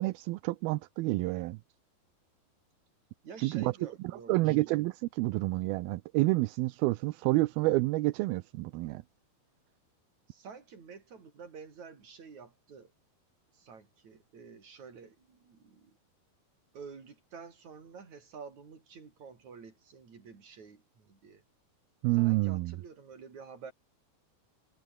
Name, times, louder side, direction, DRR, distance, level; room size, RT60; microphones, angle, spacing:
voice 1, 0.0-1.6 3.4-3.7 4.3-9.0 22.0-22.8, right 20 dB, 80° right, 2.5 m, -29 dB
voice 2, 3.2-4.6 10.3-12.9 13.5-16.0 16.7-21.4 22.1-23.7, right 5 dB, 45° right, 5.5 m, -49 dB
omnidirectional pair, 4.5 m